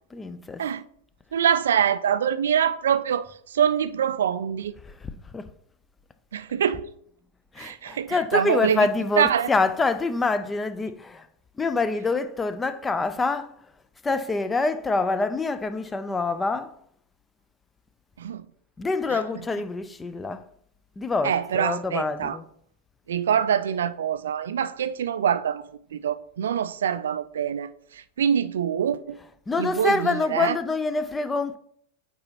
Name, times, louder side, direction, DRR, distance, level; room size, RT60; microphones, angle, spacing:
voice 1, 0.1-0.6 4.8-5.5 7.5-11.3 11.6-13.5 14.0-16.7 18.8-20.4 21.0-22.4 29.2-31.6, left 3 dB, 15° left, 0.4 m, -26 dB
voice 2, 1.3-4.7 6.3-6.9 7.6-8.9 9.2-9.5 18.2-18.4 19.1-19.2 21.2-22.4 23.1-25.6 25.9-29.2 29.6-30.6, right 8 dB, 65° right, 0.3 m, -25 dB
8.6 x 4.0 x 2.8 m
figure-of-eight pair, 90°, 0 cm